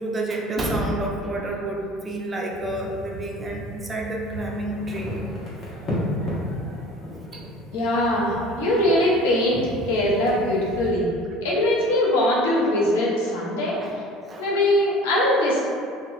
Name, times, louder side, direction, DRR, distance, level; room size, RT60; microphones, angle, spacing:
voice 1, 0.0-5.1 7.3-7.5 13.7-14.0 14.3-14.5, right 1 dB, 30° right, -1 dB, 0.4 m, -29 dB
sound 1, 2.5-10.9, left 1 dB, 40° left, 1.0 m, -34 dB
voice 2, 7.7-11.1 11.4-13.8 14.4-15.6, left 1 dB, 80° left, -4 dB, 0.6 m, -21 dB
2.9 x 2.0 x 2.4 m, 2.3 s
hypercardioid pair, 80°, 0 cm